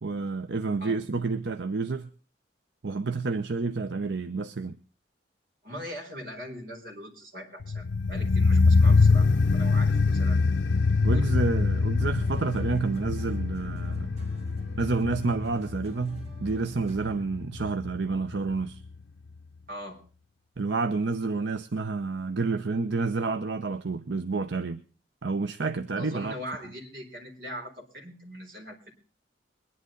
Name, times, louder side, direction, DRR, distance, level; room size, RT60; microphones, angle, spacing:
voice 1, 0.0-2.1 2.8-4.8 11.0-14.1 14.8-18.8 20.6-24.8 25.2-26.3, right 3 dB, 80° right, 0.7 m, -29 dB
voice 2, 5.6-10.4 11.1-11.4 16.2-16.3 19.7-20.0 26.0-28.9, equal, 55° right, 4.4 m, -41 dB
sound 1, 7.6-18.6 18.9-19.0, left 4 dB, 90° left, 0.6 m, -24 dB
sound 2, 12.0-17.3, equal, 40° right, 3.6 m, -50 dB
22.0 x 11.0 x 3.9 m
head